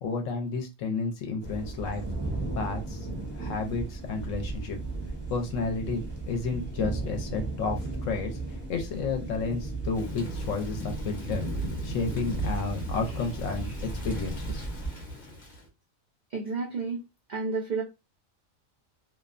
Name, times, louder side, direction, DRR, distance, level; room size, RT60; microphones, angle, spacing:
voice 1, 0.0-2.0 2.5-3.1 3.4-4.8 5.3-8.4 8.7-11.5 11.8-13.7 14.0-14.6, left 4 dB, 70° left, 4 dB, 0.9 m, -31 dB
sound 1, 1.4-14.9, right 3 dB, 10° right, 0.6 m, -36 dB
Thunder / Rain, 9.9-15.7, right 1 dB, 45° left, 0.7 m, -37 dB
voice 2, 16.3-17.8, right 4 dB, 75° right, -1 dB, 0.4 m, -31 dB
2.7 x 2.1 x 2.4 m, 0.25 s
omnidirectional pair, 1.4 m